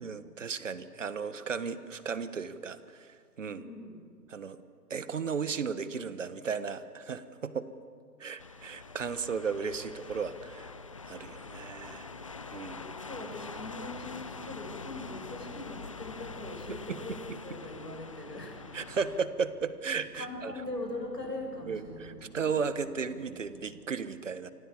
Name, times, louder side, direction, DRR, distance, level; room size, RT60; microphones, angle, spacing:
voice 1, 0.0-3.7 4.3-4.6 4.9-7.7 8.2-10.7 11.1-12.1 12.5-12.8 16.7-17.0 18.7-20.5 21.7-24.5, right 5 dB, 50° right, 13 dB, 1.5 m, -35 dB
voice 2, 3.5-4.0 12.6-18.6 20.1-22.2, left 2 dB, 80° left, 2 dB, 7.5 m, -41 dB
sound 1, 8.4-19.2, left 4 dB, 20° left, 0.7 m, -44 dB
sound 2, 12.8-23.9, right 7 dB, 15° right, 1.3 m, -56 dB
29.5 x 25.5 x 7.3 m, 2.2 s
figure-of-eight pair, 145°, 49 cm